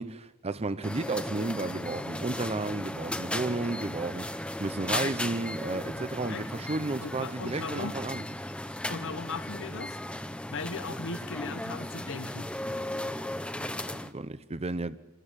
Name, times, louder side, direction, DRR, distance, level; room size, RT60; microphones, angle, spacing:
voice 1, 0.0-8.2 13.6-15.0, right 2 dB, 30° right, 0.8 m, -33 dB
sound 1, 0.8-14.1, left 1 dB, 5° left, 0.7 m, -36 dB
voice 2, 7.0-7.9 8.9-10.0 10.5-12.5, left 4 dB, 60° left, 1.0 m, -38 dB
27.5 x 13.5 x 8.9 m
head